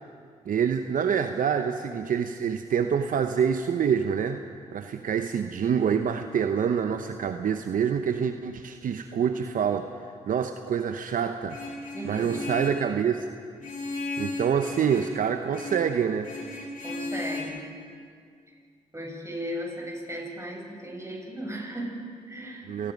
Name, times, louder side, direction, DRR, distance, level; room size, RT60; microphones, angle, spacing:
voice 1, 0.5-4.4 4.7-9.9 10.3-11.6 12.0-13.2 14.2-16.3 22.7-22.9, right 7 dB, 65° right, 8 dB, 0.9 m, -26 dB
Vehicle horn car horn honking, 11.5-12.9 13.6-15.2 15.5-15.9 16.2-17.4, left 2 dB, 65° left, 6.6 m, -35 dB
voice 2, 11.9-12.4 16.8-17.6 18.9-22.7, equal, 20° right, -1 dB, 7.6 m, -36 dB
28.0 x 18.5 x 5.3 m, 2.2 s
supercardioid pair, 45°, 15 cm